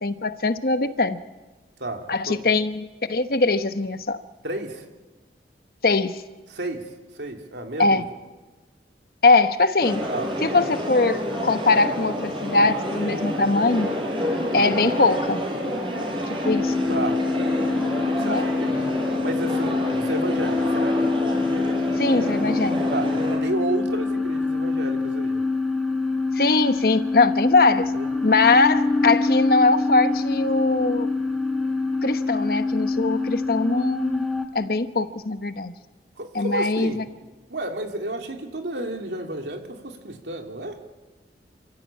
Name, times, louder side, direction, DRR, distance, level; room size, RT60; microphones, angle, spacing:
voice 1, 0.0-1.2 2.1-4.2 5.8-6.2 7.8-8.0 9.2-10.0 10.4-13.9 14.5-15.4 16.4-16.7 18.2-18.4 22.0-22.8 26.3-27.9 28.2-31.1 32.0-34.3 34.5-35.7 36.3-37.0, left 3 dB, 55° left, 10 dB, 1.1 m, -21 dB
voice 2, 1.8-2.4 4.4-4.8 6.5-6.9 7.1-8.0 10.1-10.3 14.8-15.0 16.9-18.9 19.2-21.1 22.9-25.4 27.9-28.1 36.2-40.8, right 2 dB, 75° right, 3 dB, 2.9 m, -32 dB
sound 1, 9.8-23.4, equal, 30° right, 5.4 m, -29 dB
Draft I - Safety Blanket, 16.4-34.5, left 3 dB, ahead, 1.9 m, -25 dB
28.0 x 16.0 x 8.5 m, 1.2 s
head